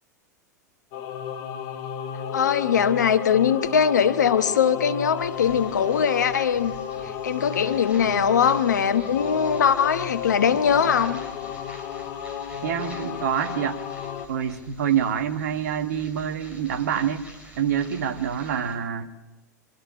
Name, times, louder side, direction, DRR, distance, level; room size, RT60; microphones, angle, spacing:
Singing / Musical instrument, 0.9-14.3, left 8 dB, 50° left, 1.6 m, -33 dB
voice 1, 2.3-6.7 7.2-11.2, left 7 dB, 75° left, 11 dB, 1.1 m, -21 dB
sound 1, 5.1-18.8, right 2 dB, 15° right, 5.6 m, -47 dB
voice 2, 12.6-13.8 14.3-17.2 17.6-19.1, right 8 dB, 65° right, 8 dB, 1.5 m, -26 dB
23.5 x 13.0 x 8.7 m, 1.1 s
figure-of-eight pair, 95°, 10 cm